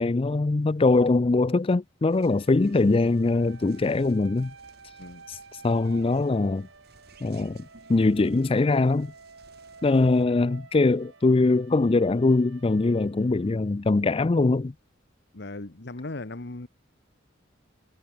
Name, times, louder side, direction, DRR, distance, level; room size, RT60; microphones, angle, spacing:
voice 1, 0.0-4.5 5.3-5.4 5.6-6.7 7.2-9.1 9.8-14.7, left 3 dB, 30° left, 0.4 m, -22 dB
sound 1, 2.1-10.2, right 3 dB, 55° right, 4.1 m, -58 dB
sound 2, 2.2-14.0, right 4 dB, 85° right, 2.1 m, -51 dB
voice 2, 15.3-16.7, left 2 dB, 60° left, 1.3 m, -37 dB
head